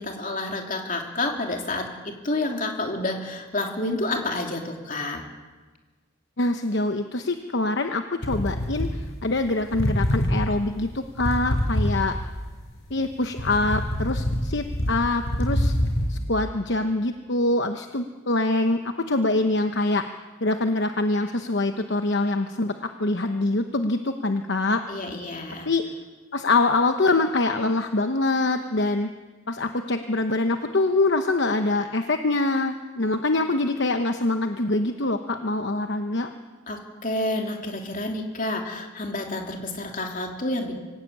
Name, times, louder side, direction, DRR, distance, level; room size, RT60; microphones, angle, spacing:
voice 1, 0.0-5.2 24.9-25.7 36.7-40.7, left 2 dB, 40° left, 2 dB, 2.9 m, -29 dB
voice 2, 6.4-12.2 12.9-15.7 16.1-20.0 20.4-24.8 25.7-25.8 26.3-29.1 29.5-36.3, left 2 dB, 55° left, 7 dB, 1.0 m, -24 dB
sound 1, 8.2-9.4 9.7-12.4 12.9-16.1, equal, 75° left, 5.4 m, -25 dB
25.0 x 15.5 x 8.7 m, 1.3 s
head